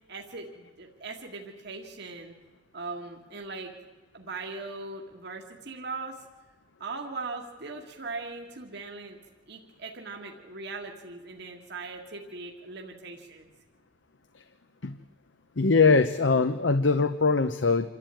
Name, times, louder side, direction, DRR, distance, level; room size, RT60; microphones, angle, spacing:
voice 1, 0.1-2.3 2.7-3.7 4.1-6.2 6.8-9.2 9.5-13.5, right 3 dB, 65° right, 1 dB, 2.0 m, -39 dB
voice 2, 15.6-17.9, left 4 dB, 80° left, 10 dB, 0.9 m, -22 dB
27.0 x 12.5 x 9.1 m, 1.4 s
head